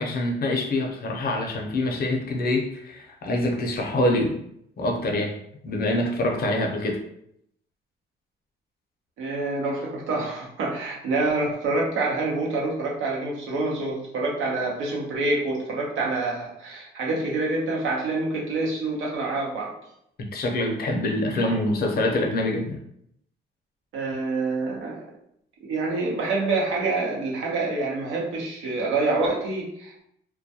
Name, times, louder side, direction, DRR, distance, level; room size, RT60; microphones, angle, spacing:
voice 1, 0.0-4.4 4.8-5.4 5.6-7.0 20.2-22.8, left 1 dB, 50° left, 2 dB, 0.6 m, -25 dB
voice 2, 9.2-19.7 21.4-21.6 23.9-25.0 25.6-29.9, right 3 dB, 85° right, -2 dB, 0.8 m, -27 dB
2.2 x 2.2 x 2.7 m, 0.73 s
cardioid pair, 90°, 20 cm